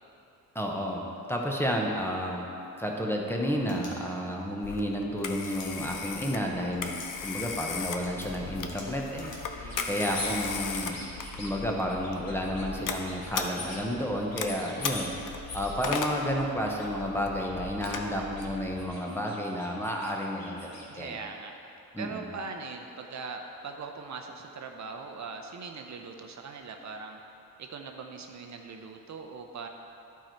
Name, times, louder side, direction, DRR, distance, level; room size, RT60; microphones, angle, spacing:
voice 1, 0.5-1.0 1.3-2.5 2.8-7.0 7.2-11.0 11.4-21.2 21.9-22.2, equal, 5° left, -1 dB, 0.7 m, -31 dB
sound 1, 3.5-4.5 5.4-5.7 6.7-7.1 7.5-7.6 8.0-10.5, left 3 dB, 85° left, 1.6 m, -49 dB
Telephone, 4.6-18.9, left 5 dB, 60° left, 0.7 m, -37 dB
voice 2, 9.6-10.5 20.9-21.7 22.0-27.2 27.6-29.7, right 4 dB, 55° right, 4 dB, 0.6 m, -41 dB
sound 2, 9.7-10.3 10.7-11.5 11.9-12.7 12.9-13.8 14.1-15.1 15.5-16.1 16.6-16.9 17.2-18.5 18.7-20.9, left 2 dB, 45° left, 1.8 m, -43 dB
11.5 x 4.6 x 4.4 m, 2.8 s
wide cardioid pair, 145°, 35 cm